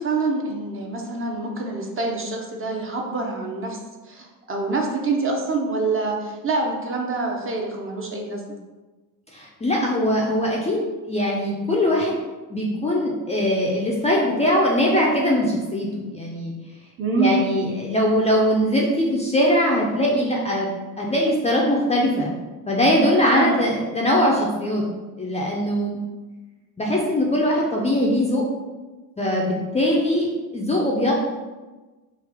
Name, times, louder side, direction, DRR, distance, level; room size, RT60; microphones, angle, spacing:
voice 1, 0.0-3.8 4.1-8.5 17.0-17.5 23.3-23.6, right 3 dB, 25° right, 1 dB, 0.6 m, -26 dB
voice 2, 9.3-12.2 12.5-16.5 17.2-20.7 21.0-22.3 22.7-24.8 25.2-26.0 26.8-28.5 29.2-30.3 30.5-31.1, left 1 dB, 15° left, -3 dB, 0.5 m, -21 dB
3.4 x 2.4 x 3.5 m, 1.2 s
hypercardioid pair, 70°, 48 cm